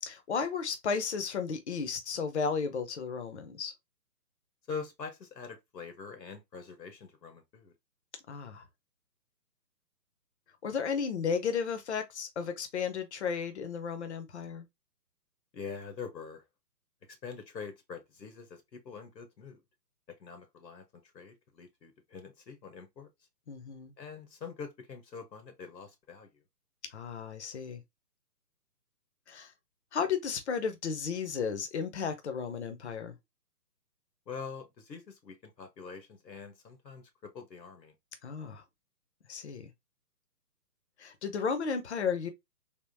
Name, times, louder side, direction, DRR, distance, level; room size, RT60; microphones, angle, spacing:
voice 1, 0.0-3.7 8.3-8.6 10.6-14.6 23.5-23.9 26.9-27.8 29.3-29.5 29.9-33.1 38.2-38.6 39.3-39.7 41.0-42.3, left 6 dB, 45° left, 0.6 m, -34 dB
voice 2, 4.7-7.7 15.5-16.4 17.1-19.6 20.2-23.1 24.0-26.3 34.3-37.9, left 5 dB, 85° left, 1.1 m, -44 dB
3.5 x 2.5 x 2.6 m
hypercardioid pair, 155°, 49 cm